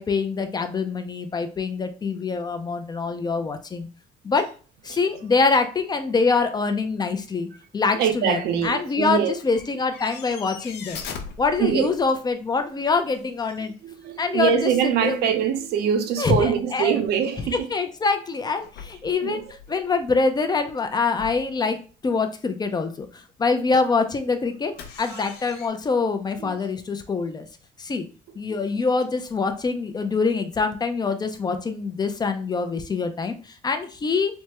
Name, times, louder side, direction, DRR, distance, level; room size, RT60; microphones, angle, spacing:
voice 1, 0.0-3.9 4.2-4.5 4.8-7.5 7.7-11.0 11.4-13.7 14.2-14.5 15.0-15.2 16.2-17.0 17.7-19.4 19.7-21.8 22.0-24.7 25.0-27.5 27.8-28.1 28.4-34.4, left 4 dB, 25° left, 0.4 m, -24 dB
voice 2, 7.9-9.3 11.6-11.9 13.8-17.7 19.2-19.4 25.1-25.2 26.4-26.6, right 8 dB, 75° right, 0.5 m, -23 dB
sound 1, 8.4-8.7 9.3-12.3 12.7-13.3 14.5-14.6 14.8-15.4 15.7-15.8 16.3-16.4 18.6-19.8 20.8-20.9 21.2-21.6 24.8-25.7, left 6 dB, 75° left, 0.6 m, -40 dB
3.4 x 2.1 x 2.9 m
cardioid pair, 110°, 17 cm